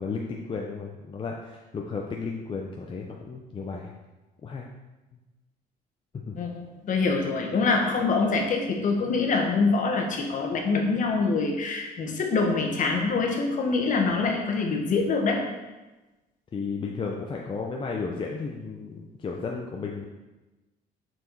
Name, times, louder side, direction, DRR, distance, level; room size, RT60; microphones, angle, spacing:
voice 1, 0.0-3.9 4.4-4.6 6.1-6.4 16.5-20.1, left 4 dB, 30° left, 0 dB, 0.7 m, -33 dB
voice 2, 6.4-15.4, left 4 dB, 50° left, 2 dB, 1.4 m, -25 dB
6.7 x 4.5 x 4.6 m, 1.1 s
cardioid pair, 110°, 17 cm